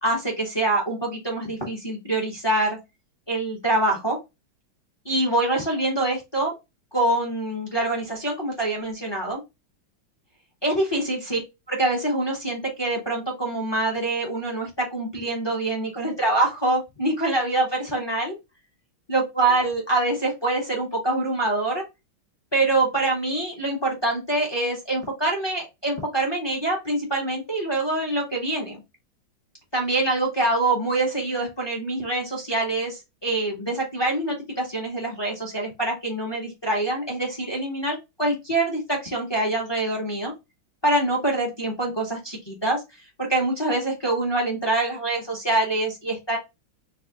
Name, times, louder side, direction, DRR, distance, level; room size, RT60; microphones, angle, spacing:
voice 1, 0.0-2.8 3.3-4.2 5.0-6.5 6.9-9.4 10.6-11.4 11.7-18.3 19.1-21.8 22.5-28.8 29.7-40.3 40.8-42.8 43.2-46.4, right 2 dB, 35° left, 0 dB, 0.4 m, -25 dB
3.3 x 2.4 x 3.7 m, 0.23 s
omnidirectional pair, 2.2 m